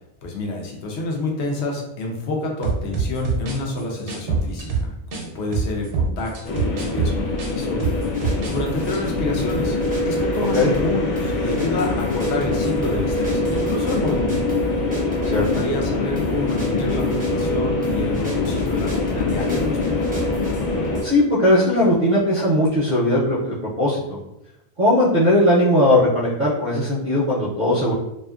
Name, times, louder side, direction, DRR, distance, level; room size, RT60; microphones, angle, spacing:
voice 1, 0.2-7.8 8.5-9.8 10.0-14.4 15.3-20.1, left 2 dB, 70° left, 0 dB, 0.9 m, -28 dB
sound 1, 2.6-5.3 5.5-8.6 8.8-9.1, right 4 dB, 85° right, 0.9 m, -24 dB
sound 2, 6.4-21.0, left 2 dB, 55° left, 0.6 m, -24 dB
sound 3, 7.8-21.1, equal, 10° right, 0.5 m, -34 dB
voice 2, 21.0-24.2 24.8-27.9, left 1 dB, 50° right, -7 dB, 0.6 m, -18 dB
2.5 x 2.5 x 2.3 m, 0.87 s
omnidirectional pair, 1.2 m